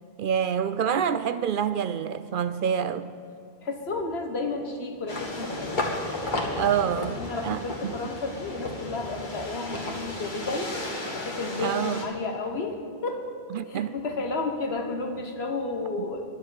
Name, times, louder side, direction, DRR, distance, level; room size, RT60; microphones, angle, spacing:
voice 1, 0.2-3.1 6.6-7.2 7.4-8.1 11.6-12.0 13.5-14.0, right 8 dB, 60° right, 13 dB, 0.6 m, -27 dB
voice 2, 3.6-5.9 7.1-10.8 11.1-16.2, left 3 dB, 80° left, 4 dB, 1.6 m, -32 dB
sound 1, 5.1-12.1, left 2 dB, 50° left, 1.9 m, -33 dB
11.5 x 7.8 x 9.8 m, 2.5 s
omnidirectional pair, 1.1 m